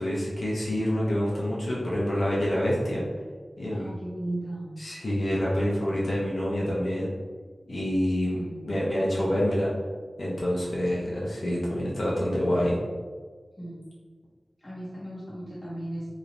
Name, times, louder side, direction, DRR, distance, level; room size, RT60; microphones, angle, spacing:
voice 1, 0.0-3.0 3.6-3.9 4.8-7.1 7.7-9.7 10.2-12.8, equal, 70° left, -7 dB, 0.6 m, -27 dB
voice 2, 3.7-4.8 8.2-8.9 13.6-13.8 14.6-16.1, right 1 dB, 25° left, -8 dB, 0.6 m, -36 dB
2.9 x 2.1 x 2.5 m, 1.5 s
wide cardioid pair, 50°, 0 cm